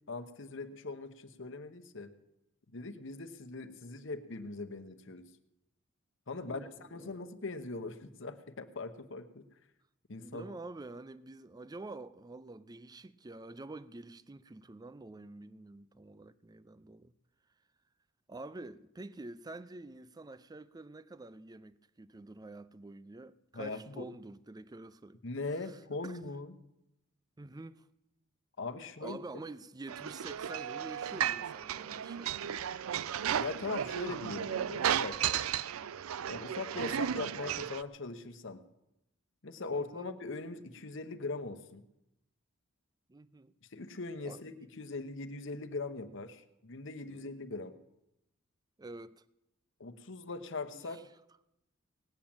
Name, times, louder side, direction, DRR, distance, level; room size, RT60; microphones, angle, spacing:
voice 1, 0.1-2.1 2.7-5.3 6.3-9.4 10.1-10.5 23.5-24.1 25.2-26.6 28.6-29.2 33.3-35.4 36.3-38.6 39.4-41.8 43.7-47.7 49.8-51.0, left 3 dB, 60° left, 1.0 m, -41 dB
voice 2, 6.4-7.2 10.2-17.1 18.3-25.2 25.6-26.2 27.4-27.9 29.0-32.7 39.7-40.1 43.1-43.5 44.3-44.5 47.0-47.3 48.8-49.2 50.7-51.0, right 2 dB, 20° right, 0.4 m, -48 dB
sound 1, 29.9-37.8, right 9 dB, 85° right, 0.4 m, -34 dB
18.5 x 7.4 x 8.8 m
head